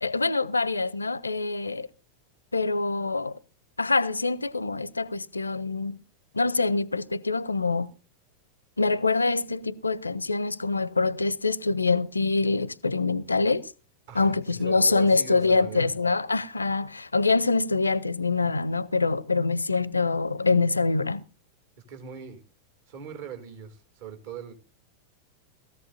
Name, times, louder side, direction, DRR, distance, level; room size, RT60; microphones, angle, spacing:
voice 1, 0.0-1.9 2.5-3.4 3.8-6.0 6.3-7.9 8.8-13.7 14.1-21.2, left 3 dB, 80° left, 0.6 m, -25 dB
voice 2, 14.1-15.9 21.9-22.4 22.9-24.5, right 7 dB, 55° right, 2.6 m, -41 dB
19.0 x 14.5 x 2.6 m
figure-of-eight pair, 90°, 0 cm